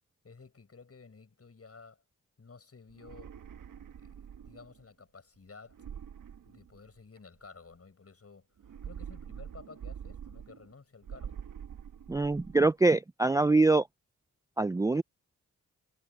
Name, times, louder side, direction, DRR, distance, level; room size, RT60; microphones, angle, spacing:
voice 1, 0.2-2.0 2.4-3.4 4.0-5.8 6.4-8.6 8.8-11.4, left 4 dB, 50° left, 7.3 m, -53 dB
sound 1, 2.9-4.8 5.7-7.2 8.6-10.7 11.0-12.7, right 8 dB, 85° right, 1.3 m, -45 dB
voice 2, 12.1-13.9 14.6-15.0, right 3 dB, 10° right, 0.3 m, -24 dB
cardioid pair, 55°, 31 cm